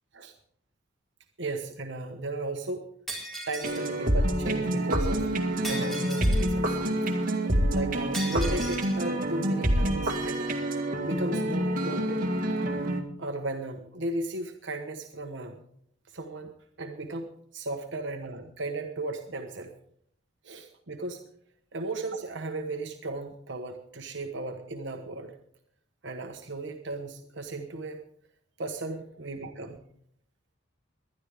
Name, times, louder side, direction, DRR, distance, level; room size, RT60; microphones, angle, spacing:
voice 1, 1.4-2.9 3.5-5.3 5.7-6.8 7.1-7.2 7.7-10.5 11.0-12.3 13.2-15.6 16.1-19.7 20.4-21.2 21.7-25.3 26.0-28.0 28.6-29.8, right 2 dB, 65° right, 4 dB, 1.2 m, -35 dB
Shatter, 3.1-3.9 5.6-6.5 8.1-9.0, right 1 dB, ahead, 4.3 m, -37 dB
sound 1, 3.6-13.0, right 1 dB, 45° right, 2.0 m, -27 dB
21.0 x 11.5 x 3.6 m, 0.68 s
head